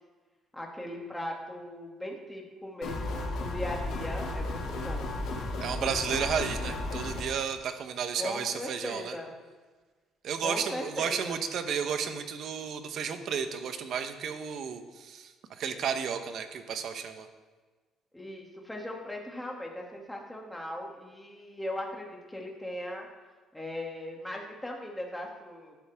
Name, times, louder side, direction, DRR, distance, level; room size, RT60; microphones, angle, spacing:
voice 1, 0.5-5.1 8.2-9.3 10.4-11.4 18.1-23.1 23.5-25.8, left 1 dB, 5° left, -1 dB, 2.5 m, -38 dB
sound 1, 2.8-7.2, left 2 dB, 80° left, 2.8 m, -34 dB
voice 2, 5.6-9.2 10.2-17.3, right 7 dB, 60° right, 8 dB, 1.1 m, -33 dB
13.0 x 11.0 x 3.7 m, 1.4 s
cardioid pair, 105°, 0 cm